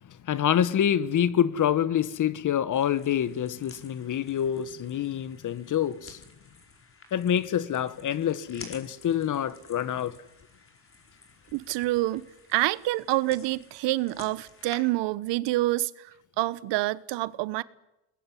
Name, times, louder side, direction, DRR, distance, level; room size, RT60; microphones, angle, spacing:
voice 1, 0.2-6.2 7.1-10.2, left 9 dB, 45° left, 1.3 m, -26 dB
sound 1, 2.7-14.8, left 4 dB, 30° left, 4.7 m, -52 dB
voice 2, 11.5-17.6, right 18 dB, 80° right, 1.0 m, -27 dB
22.5 x 20.5 x 9.8 m
cardioid pair, 115°, 42 cm